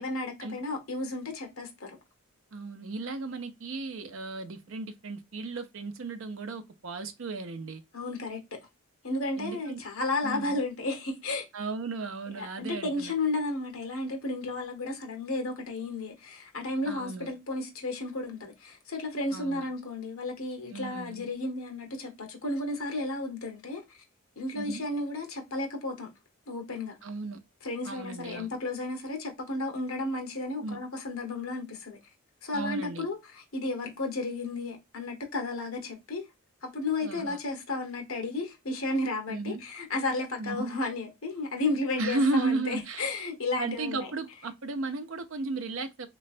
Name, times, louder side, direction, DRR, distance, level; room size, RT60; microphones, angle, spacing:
voice 1, 0.0-2.0 7.9-8.6 9.0-11.4 12.3-23.8 24.4-26.1 26.5-27.0 27.6-32.0 32.4-36.2 36.6-44.1, left 2 dB, 75° left, 1.1 m, -33 dB
voice 2, 2.5-7.8 9.4-9.8 10.2-10.6 11.5-13.1 16.8-17.3 19.3-19.6 20.7-21.3 24.5-24.8 27.0-27.4 27.8-28.5 30.6-30.8 32.5-33.1 37.0-37.4 39.3-39.6 40.4-40.8 42.0-43.0 43.6-46.1, right 3 dB, 65° right, 0.6 m, -34 dB
3.2 x 3.1 x 2.4 m
head